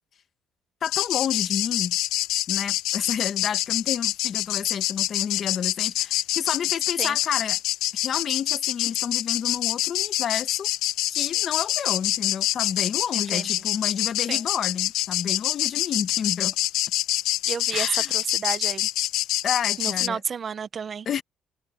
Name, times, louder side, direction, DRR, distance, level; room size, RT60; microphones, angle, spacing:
sound 1, 0.8-20.1, left 15 dB, 90° left, 0.7 m, -26 dB
voice 1, 0.8-2.0 2.5-7.6 8.0-10.7 11.1-16.6 17.7-18.1 19.4-20.2 21.0-21.2, left 8 dB, 40° left, 1.5 m, -30 dB
voice 2, 13.1-13.5 14.3-14.4 17.5-18.9 19.8-21.1, right 6 dB, 30° right, 0.6 m, -31 dB
cardioid pair, 155°, 0 cm